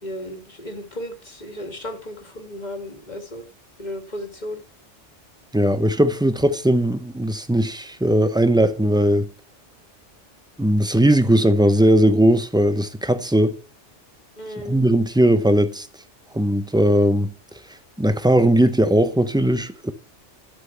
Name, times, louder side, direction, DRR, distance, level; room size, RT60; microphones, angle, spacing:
voice 1, 0.0-3.4 3.8-4.6 14.4-14.8, left 1 dB, 35° left, 2.1 m, -34 dB
voice 2, 5.5-9.3 10.6-13.6 14.6-15.9 16.3-17.3 18.0-19.9, right 1 dB, 5° right, 0.6 m, -18 dB
11.5 x 5.9 x 7.0 m
omnidirectional pair, 1.2 m